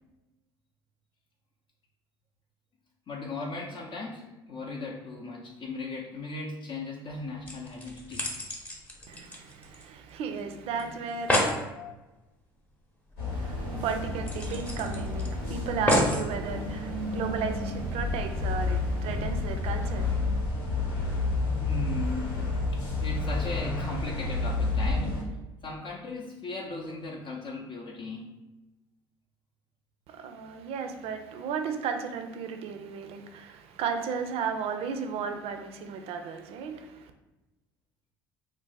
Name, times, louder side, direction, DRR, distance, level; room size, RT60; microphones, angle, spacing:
voice 1, 3.1-8.2 11.7-11.9 21.6-22.4 23.0-25.2 25.6-28.3, left 3 dB, 45° left, 0.5 m, -37 dB
sound 1, 7.1-7.2 7.5-10.1 10.4-10.5 10.8-10.9 11.1-11.6 13.1-13.2 13.5-13.6 14.3-15.3 15.9-16.3 17.0-17.1, equal, 10° left, 0.8 m, -29 dB
voice 2, 9.1-11.3 13.3-20.4 30.1-37.1, right 6 dB, 55° right, 0.4 m, -34 dB
sound 2, 13.2-25.2, left 2 dB, 85° left, 1.1 m, -30 dB
2.5 x 2.0 x 3.9 m
hypercardioid pair, 70°, 12 cm